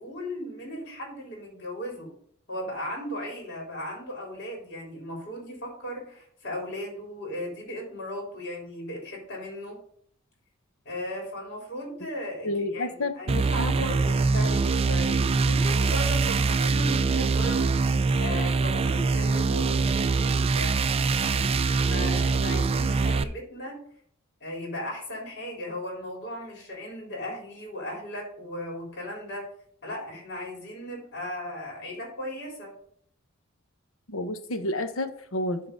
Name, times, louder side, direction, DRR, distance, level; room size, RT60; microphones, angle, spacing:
voice 1, 0.0-2.1 2.5-9.8 10.9-17.7 18.2-23.8 24.4-29.5 29.8-32.7, left 1 dB, 55° left, -1 dB, 3.5 m, -37 dB
voice 2, 12.4-13.7 34.1-35.6, left 1 dB, 80° left, 8 dB, 1.0 m, -30 dB
sound 1, 13.3-23.2, right 4 dB, 30° right, 0.3 m, -24 dB
11.0 x 3.9 x 5.2 m, 0.63 s
head